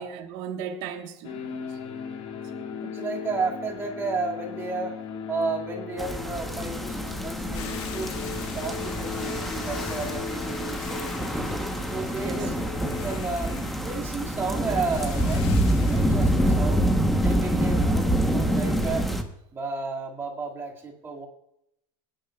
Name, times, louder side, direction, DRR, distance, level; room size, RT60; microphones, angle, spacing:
voice 1, 0.0-1.8 2.5-3.0 12.2-12.5 17.4-17.9, right 7 dB, 55° right, 1.3 m, -38 dB
sound 1, 1.2-13.1, left 6 dB, 40° left, 1.7 m, -37 dB
voice 2, 2.8-5.0 5.3-8.1 8.6-11.5 11.9-12.6 12.8-13.6 13.8-16.9 17.2-19.1 19.5-21.3, right 4 dB, 15° right, 2.1 m, -32 dB
sound 2, 6.0-19.2, equal, ahead, 1.0 m, -26 dB
Hiss / Boiling, 7.5-16.9, left 8 dB, 65° left, 1.9 m, -44 dB
24.0 x 10.5 x 2.3 m
cardioid pair, 170°, 15 cm